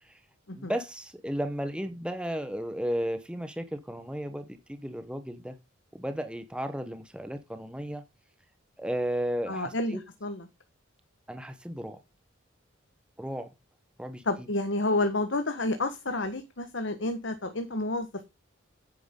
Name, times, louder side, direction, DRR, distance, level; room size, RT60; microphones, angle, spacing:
voice 1, 0.5-5.6 5.9-8.0 8.8-10.0 11.3-12.0 13.2-13.5 14.0-14.5, equal, 5° right, 0.9 m, -34 dB
voice 2, 9.5-10.4 14.2-18.3, left 2 dB, 60° left, 1.3 m, -30 dB
9.4 x 9.3 x 3.7 m
head